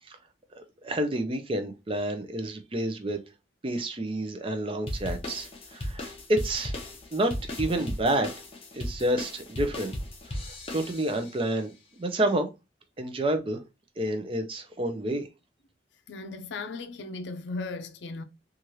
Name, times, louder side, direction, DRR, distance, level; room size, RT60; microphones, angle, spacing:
voice 1, 0.5-3.2 3.6-6.7 7.1-8.3 8.7-9.9 10.5-12.5 13.0-13.6 14.0-15.3, right 1 dB, 30° right, 0.5 m, -29 dB
sound 1, 4.9-11.4, left 1 dB, 30° left, 0.7 m, -36 dB
voice 2, 16.1-18.2, left 3 dB, 80° left, 0.4 m, -36 dB
3.1 x 2.4 x 2.7 m
head